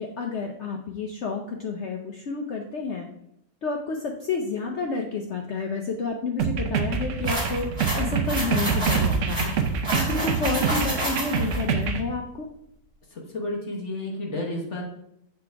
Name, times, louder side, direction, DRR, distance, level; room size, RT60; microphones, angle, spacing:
voice 1, 0.0-3.1 3.6-9.6 9.9-12.5, left 4 dB, 80° left, 2 dB, 0.6 m, -30 dB
sound 1, 6.4-12.0, right 6 dB, 70° right, 0.7 m, -26 dB
sound 2, 7.2-11.6, right 1 dB, 35° right, 2.4 m, -30 dB
voice 2, 13.1-14.8, left 2 dB, 45° left, -1 dB, 1.2 m, -31 dB
6.9 x 4.4 x 3.4 m, 0.77 s
omnidirectional pair, 1.9 m